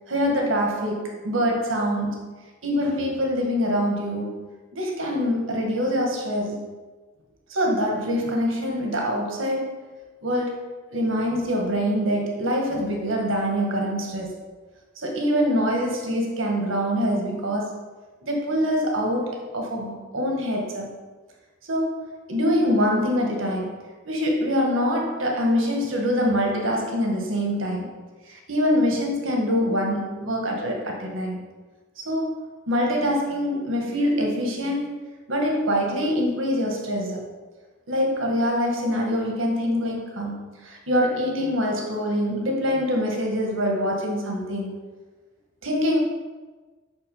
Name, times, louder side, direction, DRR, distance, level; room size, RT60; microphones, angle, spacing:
voice 1, 0.1-2.3 2.6-6.7 7.5-9.8 10.2-10.6 10.9-14.3 15.0-17.8 18.2-20.9 21.6-23.8 24.1-27.9 28.3-31.4 32.0-34.9 35.3-37.2 37.9-44.8 45.6-46.0, equal, 75° right, 0 dB, 1.8 m, -24 dB
8.2 x 6.2 x 5.5 m, 1.3 s
head